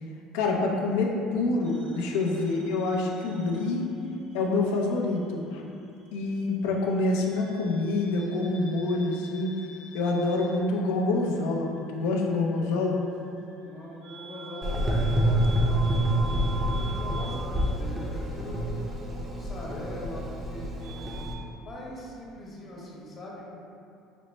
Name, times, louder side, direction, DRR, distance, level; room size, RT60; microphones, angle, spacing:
voice 1, 0.3-3.9 4.3-5.6 6.1-9.6 9.9-13.0, left 2 dB, 90° left, 0 dB, 0.4 m, -26 dB
sound 1, 1.6-4.5 4.7-5.9 7.1-21.4, right 3 dB, 80° right, 1.0 m, -45 dB
voice 2, 13.6-18.6 19.1-21.2 21.6-23.5, left 1 dB, 40° left, -4 dB, 0.8 m, -41 dB
Gurgling / Engine, 14.6-21.3, right 1 dB, 20° right, 0.5 m, -27 dB
5.0 x 2.0 x 3.1 m, 2.6 s
cardioid pair, 125°, 0 cm